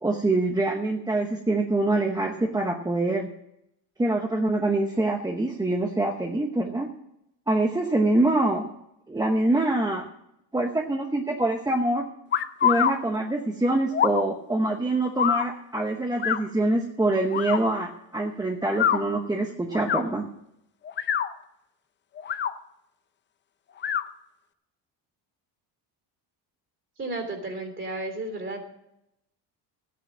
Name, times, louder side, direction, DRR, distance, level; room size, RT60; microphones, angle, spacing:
voice 1, 0.0-3.3 4.0-6.9 7.5-8.7 9.1-10.1 10.5-12.1 12.6-20.3, right 2 dB, 10° right, 3 dB, 0.8 m, -25 dB
sound 1, 12.3-12.9 13.9-14.2 15.2-15.5 16.2-16.4 17.3-17.6 18.7-19.0 19.7-20.0 20.8-21.3 22.2-22.5 23.8-24.0, left 9 dB, 30° left, 0.5 m, -24 dB
voice 2, 27.0-28.6, right 2 dB, 30° right, 5 dB, 3.1 m, -33 dB
13.5 x 9.3 x 6.1 m, 0.81 s
cardioid pair, 150°, 42 cm